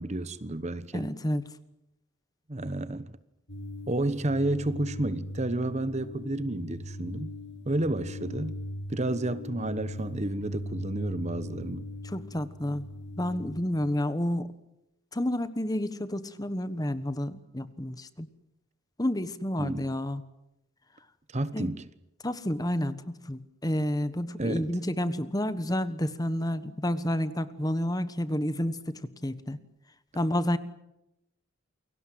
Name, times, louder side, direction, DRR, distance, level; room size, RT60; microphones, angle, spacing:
voice 1, 0.0-1.1 2.5-3.2 3.9-7.3 7.7-8.6 8.9-11.9 19.6-19.9 21.3-21.9 24.4-24.7, right 2 dB, 30° right, 1.1 m, -31 dB
voice 2, 0.9-1.4 12.0-12.9 13.2-14.5 15.1-18.3 19.0-20.2 21.5-21.7 22.2-29.6 30.1-30.6, left 1 dB, 15° left, 1.3 m, -30 dB
sound 1, 3.5-13.6, left 1 dB, 50° left, 2.2 m, -39 dB
29.0 x 23.0 x 7.7 m
head